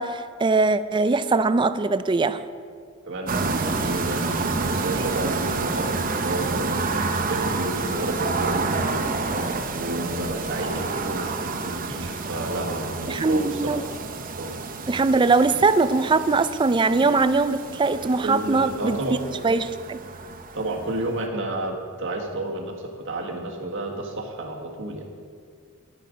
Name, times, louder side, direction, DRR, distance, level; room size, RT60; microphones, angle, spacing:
voice 1, 0.0-2.4 13.1-13.8 14.9-19.0 19.4-20.0, right 3 dB, 25° right, 13 dB, 0.4 m, -21 dB
voice 2, 3.1-9.5 9.7-13.8 14.4-14.5 18.0-19.2 20.5-25.1, right 1 dB, 65° right, 1 dB, 1.6 m, -31 dB
sound 1, 3.3-21.1, right 3 dB, 40° right, 0.7 m, -29 dB
10.5 x 9.9 x 5.1 m, 2.1 s
head